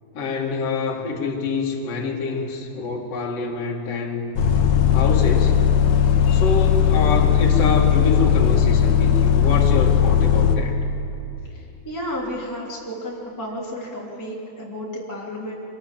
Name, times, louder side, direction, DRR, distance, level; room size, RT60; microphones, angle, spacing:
voice 1, 0.1-4.2 4.9-5.7 6.2-10.7, left 4 dB, 40° left, -1 dB, 2.8 m, -26 dB
Bus, 4.4-10.6, left 8 dB, 60° left, 2.5 m, -17 dB
voice 2, 11.5-15.5, equal, 5° left, -5 dB, 2.5 m, -32 dB
26.5 x 19.5 x 7.6 m, 2.8 s
omnidirectional pair, 4.8 m